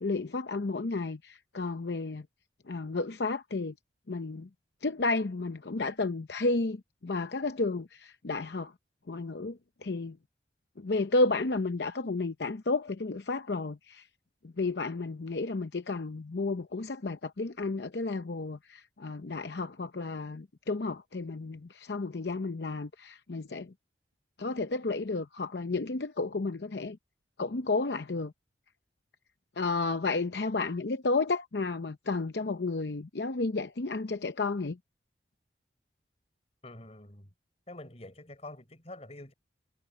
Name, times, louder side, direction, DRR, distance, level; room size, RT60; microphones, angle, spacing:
voice 1, 0.0-2.3 2.7-3.7 4.1-4.5 4.8-8.7 9.1-10.2 10.8-14.1 14.4-23.7 24.4-27.0 27.4-28.3 29.6-34.8, left 3 dB, 65° left, 0.7 m, -32 dB
voice 2, 36.6-37.3 37.7-39.3, left 1 dB, 35° left, 5.0 m, -46 dB
head